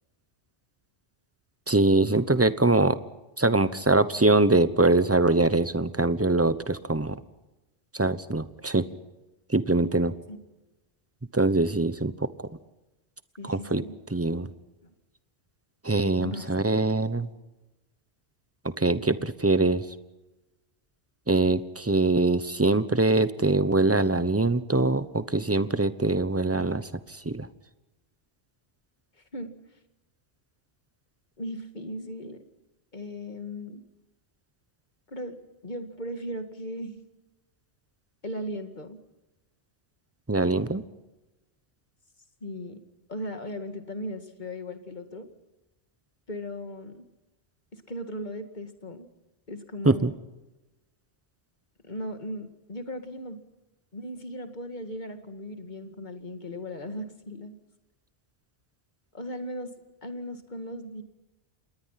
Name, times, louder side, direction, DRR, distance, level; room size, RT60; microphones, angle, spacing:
voice 1, 1.7-3.0 3.4-7.1 7.9-8.8 9.5-10.1 11.3-12.3 13.4-13.8 14.1-14.5 15.8-17.3 18.8-19.8 21.3-26.9 27.2-27.5 40.3-40.8 49.8-50.1, right 2 dB, 15° right, 14 dB, 0.9 m, -23 dB
voice 2, 13.4-13.9 16.2-16.9 29.3-29.5 31.4-32.4 32.9-33.8 35.1-35.4 35.6-37.0 38.2-39.0 42.4-42.8 43.1-45.3 46.3-47.1 47.7-49.1 49.5-50.1 51.8-53.4 53.9-57.6 59.1-59.7 60.0-61.0, equal, 45° left, 7 dB, 2.2 m, -37 dB
27.5 x 20.5 x 5.8 m, 1.0 s
omnidirectional pair, 1.1 m